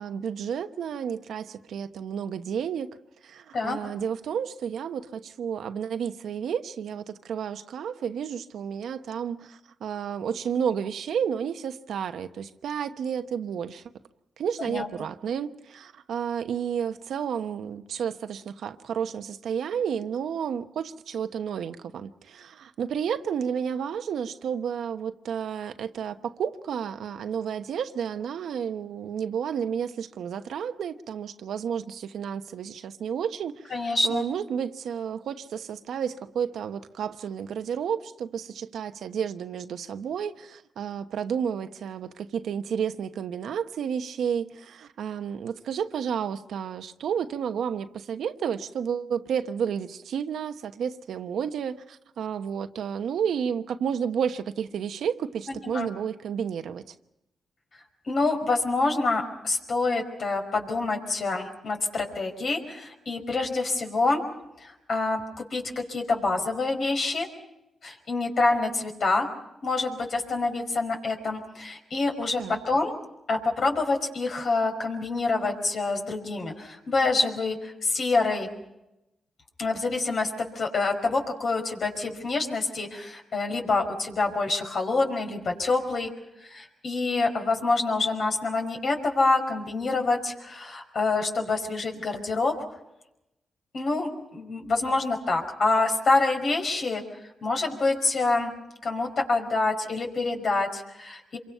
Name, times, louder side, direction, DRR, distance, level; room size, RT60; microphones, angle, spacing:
voice 1, 0.0-3.0 3.2-13.8 14.4-56.8 72.4-72.6, right 7 dB, 80° right, 1.0 m, -31 dB
voice 2, 33.7-34.2 55.5-55.9 57.7-64.2 64.6-67.3 67.8-69.3 69.6-72.9 73.3-78.5 79.6-86.1 86.4-92.5 93.7-97.0 97.4-98.5 98.8-101.4, left 3 dB, 60° left, 5.0 m, -26 dB
27.0 x 24.0 x 5.7 m
cardioid pair, 65°, 0 cm